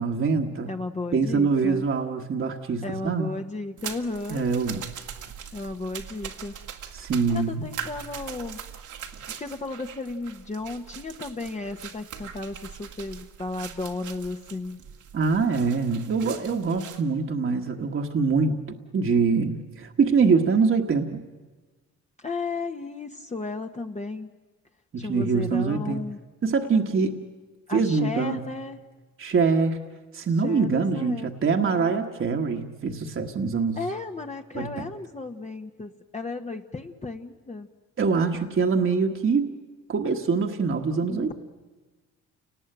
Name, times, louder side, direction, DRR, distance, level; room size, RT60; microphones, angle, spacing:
voice 1, 0.0-0.7 1.1-3.3 4.3-4.8 6.9-7.6 15.1-21.2 24.9-26.0 26.4-27.2 27.7-28.4 29.2-29.8 30.1-33.8 34.5-34.8 38.0-39.5 39.9-41.3, right 5 dB, 45° right, 3 dB, 1.5 m, -24 dB
voice 2, 0.7-1.9 2.8-4.5 5.5-6.6 7.3-8.6 9.4-14.8 22.2-24.3 25.0-26.2 27.7-28.8 30.4-31.3 31.7-31.9 33.8-37.7 41.1-41.3, left 3 dB, 25° left, 4 dB, 1.2 m, -34 dB
sound 1, 3.8-17.0, right 8 dB, 75° right, 2.0 m, -41 dB
29.0 x 19.0 x 9.1 m, 1.3 s
cardioid pair, 90°, 30 cm